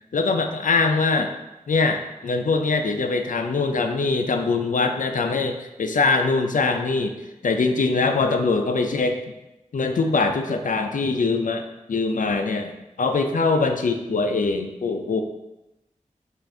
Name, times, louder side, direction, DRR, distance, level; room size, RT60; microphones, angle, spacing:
voice 1, 0.1-1.3 1.7-7.2 7.4-9.2 9.7-15.2, left 3 dB, 70° left, 6 dB, 0.5 m, -23 dB
5.5 x 2.5 x 3.7 m, 0.99 s
wide cardioid pair, 50°, 14 cm